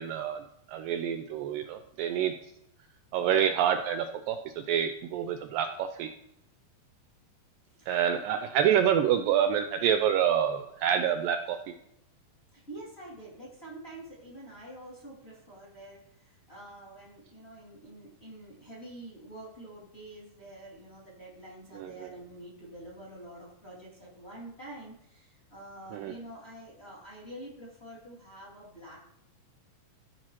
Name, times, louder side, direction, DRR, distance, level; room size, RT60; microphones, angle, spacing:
voice 1, 0.0-2.3 3.1-6.1 7.9-11.7 21.7-22.1 25.9-26.1, right 9 dB, 80° right, 7 dB, 2.1 m, -27 dB
voice 2, 7.7-8.2 12.5-29.1, right 1 dB, 20° left, -5 dB, 2.0 m, -47 dB
14.5 x 6.0 x 2.9 m, 0.78 s
omnidirectional pair, 4.3 m